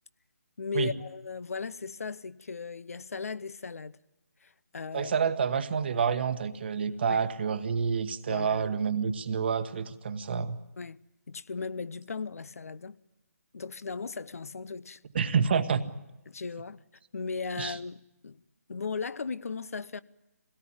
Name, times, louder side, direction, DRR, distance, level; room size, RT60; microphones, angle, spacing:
voice 1, 0.6-3.9 4.4-5.1 7.1-7.2 8.3-8.7 10.8-11.0 11.3-13.0 13.5-15.0 16.3-16.8 17.1-18.4 18.7-20.0, left 5 dB, 65° left, 0.7 m, -37 dB
voice 2, 4.9-10.6 15.1-16.0 17.6-17.8, right 6 dB, 40° right, 1.2 m, -28 dB
23.0 x 18.0 x 8.8 m
figure-of-eight pair, 160°, 9 cm